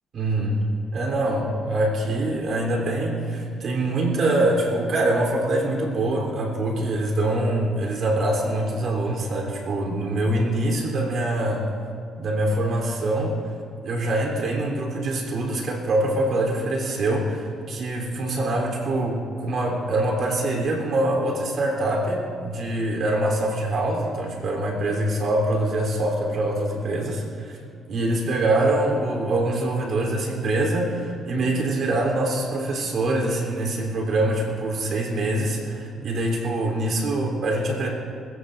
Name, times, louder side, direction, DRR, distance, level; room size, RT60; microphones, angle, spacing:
voice 1, 0.1-0.6 0.9-11.7 12.2-13.4 13.8-27.6 27.9-37.9, right 1 dB, 60° right, -1 dB, 3.6 m, -24 dB
21.0 x 17.0 x 2.6 m, 2.4 s
cardioid pair, 90°, 0 cm